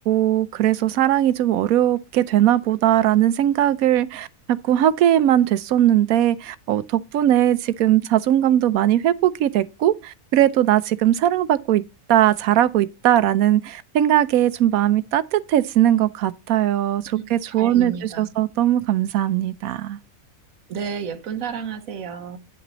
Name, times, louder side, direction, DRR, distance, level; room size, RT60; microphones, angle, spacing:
voice 1, 0.1-11.8 12.1-20.0, right 12 dB, 90° right, 1.1 m, -19 dB
voice 2, 17.6-18.3 20.7-22.4, right 7 dB, 75° right, 1.4 m, -31 dB
9.1 x 6.1 x 3.9 m
omnidirectional pair, 1.5 m